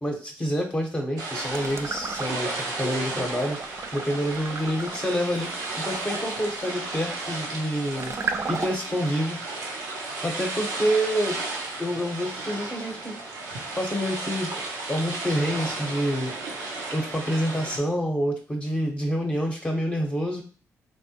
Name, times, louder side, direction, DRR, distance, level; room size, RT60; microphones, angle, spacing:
voice 1, 0.0-2.5 2.7-3.6 3.9-5.5 5.8-8.1 8.5-9.4 10.2-11.4 11.8-13.2 13.8-14.5 14.9-16.3 16.9-20.4, equal, 20° left, 0 dB, 0.8 m, -27 dB
sound 1, 1.2-17.8, right 3 dB, 90° right, 0.6 m, -34 dB
sound 2, 1.5-2.6 3.0-9.0, right 4 dB, 45° right, 0.4 m, -35 dB
3.3 x 2.1 x 2.8 m, 0.38 s
supercardioid pair, 55°, 6 cm